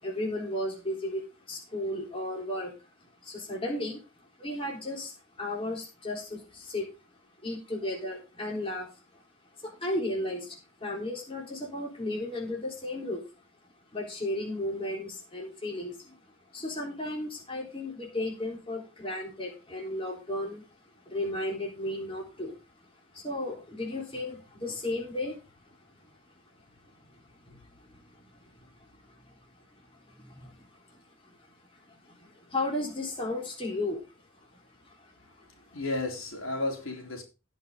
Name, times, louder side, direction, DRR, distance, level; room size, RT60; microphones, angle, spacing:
voice 1, 0.0-2.7 3.2-6.9 7.4-9.2 9.6-13.2 13.9-16.2 16.5-20.6 21.1-22.6 23.1-25.6 26.9-29.3 30.1-31.4 31.7-34.1 34.3-34.5 34.8-35.8, left 1 dB, 25° left, 3.6 m, -35 dB
voice 2, 35.7-37.2, left 2 dB, 80° left, 3.7 m, -33 dB
18.0 x 6.0 x 3.8 m
head